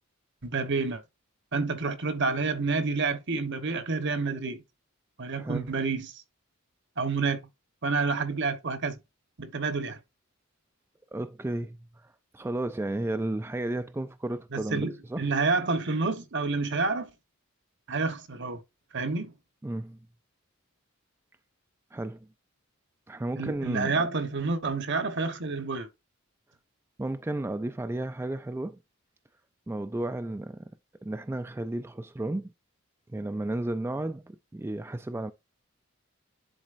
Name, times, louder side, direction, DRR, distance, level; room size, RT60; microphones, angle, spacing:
voice 1, 0.4-1.0 1.5-4.6 5.2-6.2 7.0-7.4 7.8-9.0 9.4-10.0 14.5-17.1 17.9-18.6 18.9-19.3 23.4-25.9, right 4 dB, 60° right, 1.1 m, -29 dB
voice 2, 5.3-5.7 11.1-15.3 19.6-20.0 21.9-22.3 23.1-24.0 27.0-28.8 29.7-30.7 31.0-32.5 33.1-35.3, right 1 dB, 10° right, 0.3 m, -33 dB
10.5 x 4.1 x 2.5 m
head